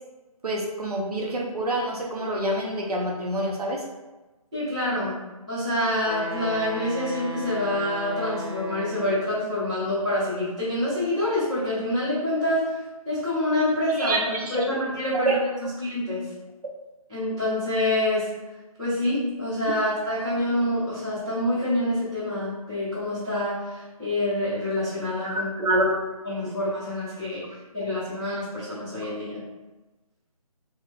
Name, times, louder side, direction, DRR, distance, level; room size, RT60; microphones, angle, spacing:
voice 1, 0.4-3.8 14.0-14.6 15.1-15.4 25.2-26.0, right 1 dB, 90° right, -1 dB, 0.8 m, -26 dB
voice 2, 4.5-5.2 5.5-12.7 13.0-14.2 14.5-15.4 15.8-16.3 17.1-18.3 18.8-25.8 26.2-27.4 27.7-29.4, left 1 dB, 10° right, -16 dB, 1.0 m, -26 dB
Wind instrument woodwind instrument, 6.0-9.5, left 1 dB, 45° right, 1.0 m, -35 dB
2.9 x 2.9 x 2.3 m, 1.1 s
hypercardioid pair, 175°, 19 cm